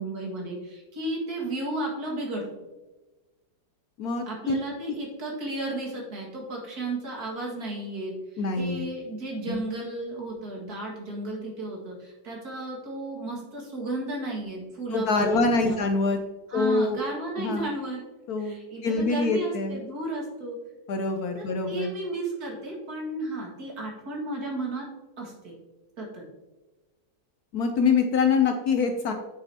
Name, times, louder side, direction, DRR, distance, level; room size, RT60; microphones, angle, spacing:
voice 1, 0.0-2.6 4.3-8.1 8.6-15.8 16.5-18.0 18.4-20.6 21.4-24.9 25.2-25.5 26.0-26.2, right 2 dB, 55° right, -2 dB, 2.3 m, -34 dB
voice 2, 4.0-4.5 4.9-5.0 8.4-8.9 9.5-9.6 14.9-16.2 16.5-17.1 17.4-17.7 18.3-19.8 20.9-21.9 27.5-29.1, left 4 dB, 70° left, 5 dB, 1.0 m, -25 dB
8.3 x 6.4 x 2.8 m, 1.1 s
omnidirectional pair, 2.0 m